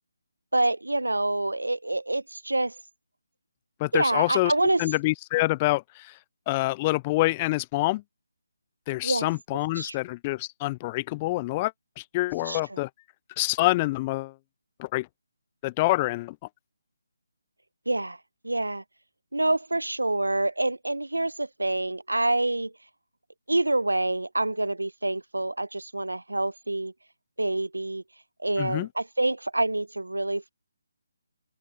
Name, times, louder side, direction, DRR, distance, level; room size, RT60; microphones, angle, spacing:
voice 1, 0.5-2.8 3.9-4.8 9.0-9.3 9.8-10.0 12.4-12.8 17.9-18.2 18.4-18.8 19.3-22.7 23.5-26.9 27.4-28.0 28.4-30.5, right 2 dB, 85° right, 0.8 m, -27 dB
voice 2, 3.8-4.5 4.8-6.2 6.5-8.0 8.9-12.9 13.4-14.3 14.8-15.1 15.6-16.4 28.6-28.9, left 20 dB, 25° left, 0.3 m, -26 dB
open air
figure-of-eight pair, 150°, 0 cm